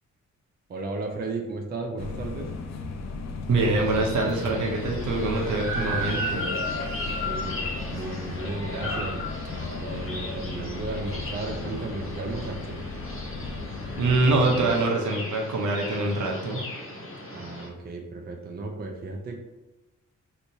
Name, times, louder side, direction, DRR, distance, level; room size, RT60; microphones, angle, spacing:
voice 1, 0.7-2.5 7.2-9.2 9.8-12.8 17.3-19.4, right 3 dB, 30° right, 2 dB, 0.4 m, -34 dB
sound 1, 2.0-14.7, left 3 dB, 60° left, 0.4 m, -36 dB
voice 2, 3.5-6.5 13.9-16.6, right 2 dB, 70° right, 0 dB, 0.8 m, -24 dB
sound 2, 3.7-17.7, left 1 dB, 45° left, 1.1 m, -35 dB
3.4 x 3.0 x 2.7 m, 1.0 s
wide cardioid pair, 115°, 31 cm